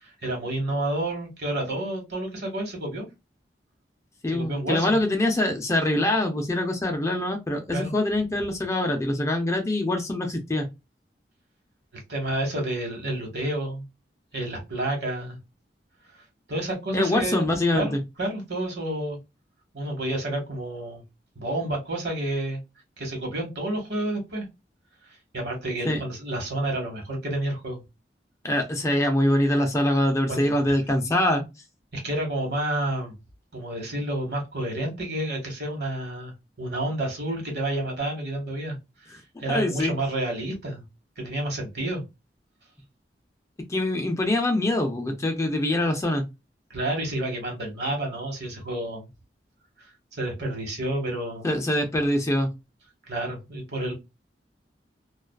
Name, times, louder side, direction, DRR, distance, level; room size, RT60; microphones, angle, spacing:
voice 1, 0.0-3.1 4.3-5.0 7.7-7.9 12.1-13.8 14.3-15.4 16.5-17.5 17.7-19.2 19.7-21.0 21.3-22.6 23.0-24.4 25.3-27.8 30.3-30.5 31.9-33.1 33.5-36.3 36.6-38.8 39.4-40.8 41.2-42.0 46.7-49.1 50.1-51.5 53.1-53.9, right 1 dB, 65° right, 1.2 m, -29 dB
voice 2, 4.2-10.7 16.9-18.0 25.8-26.0 28.4-31.4 39.5-39.9 43.7-46.3 51.4-52.5, left 1 dB, 15° left, 0.4 m, -24 dB
2.3 x 2.3 x 2.3 m
head